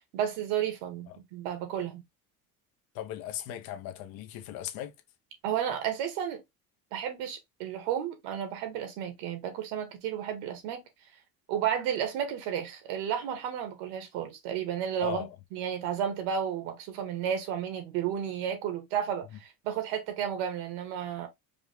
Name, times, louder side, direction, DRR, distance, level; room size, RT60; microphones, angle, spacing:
voice 1, 0.1-2.0 5.4-6.4 6.9-10.8 11.5-15.2 15.5-21.3, right 9 dB, 90° right, 1.8 m, -32 dB
voice 2, 2.9-4.9 15.0-15.3, left 11 dB, 65° left, 0.9 m, -37 dB
5.0 x 2.3 x 3.5 m
cardioid pair, 150°, 38 cm